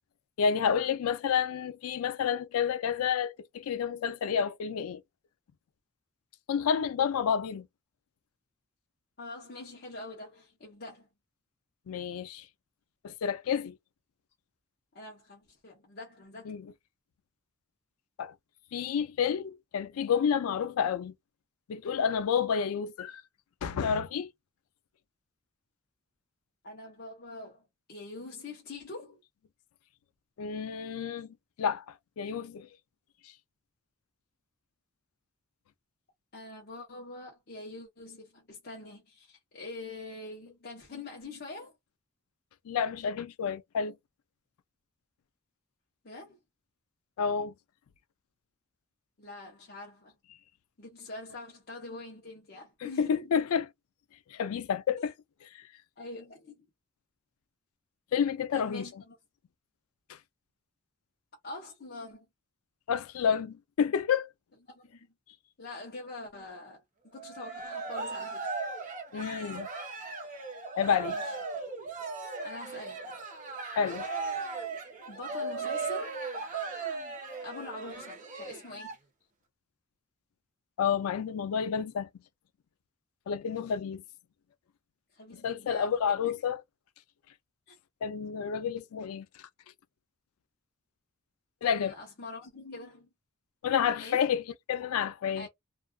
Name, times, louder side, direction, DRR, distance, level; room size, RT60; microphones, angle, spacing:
voice 1, 0.4-5.0 6.5-7.7 11.9-12.5 13.0-13.7 16.5-16.7 18.2-18.3 18.7-21.1 21.7-23.2 23.6-24.3 30.4-32.7 42.7-43.9 47.2-47.5 53.0-53.7 54.3-55.1 55.5-55.6 58.1-58.8 60.1-60.2 62.9-64.3 69.1-69.7 70.8-71.2 73.8-74.0 80.8-82.1 83.3-84.0 85.3-86.6 88.0-89.3 91.6-91.9 93.6-94.4 94.7-95.5, left 7 dB, 85° left, 0.4 m, -29 dB
voice 2, 9.2-11.1 14.9-16.6 26.6-29.2 36.3-41.7 46.0-46.4 49.2-50.1 50.8-53.3 56.0-56.6 58.5-59.2 61.4-62.3 64.7-65.1 65.6-66.8 67.1-68.5 71.0-71.2 72.4-73.2 75.1-76.1 77.4-79.0 85.1-85.9 87.7-87.8 91.6-93.1 94.0-94.3 95.4-95.5, left 2 dB, 45° left, 0.7 m, -44 dB
Cheering, 67.2-78.9, right 4 dB, 35° right, 0.8 m, -37 dB
2.4 x 2.3 x 2.2 m
head